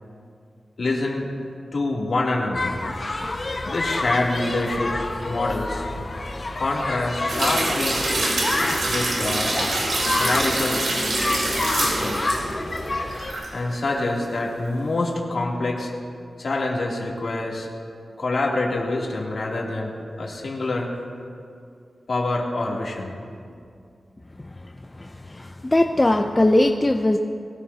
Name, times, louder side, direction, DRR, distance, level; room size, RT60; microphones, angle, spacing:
voice 1, 0.8-1.3 1.7-2.8 3.6-5.8 6.5-8.0 8.9-9.6 10.0-10.9 11.6-12.3 13.5-15.9 16.4-17.7 18.2-20.9 22.1-23.1, left 2 dB, 60° left, -3 dB, 2.9 m, -26 dB
sound 1, 2.5-13.3, left 2 dB, 40° left, 1.4 m, -28 dB
sound 2, 7.3-13.5 13.9-14.0, right 2 dB, 70° right, 4.0 m, -25 dB
voice 2, 25.0-27.2, left 1 dB, 20° left, 4 dB, 0.6 m, -20 dB
22.0 x 18.5 x 2.9 m, 2.4 s
wide cardioid pair, 90°, 0 cm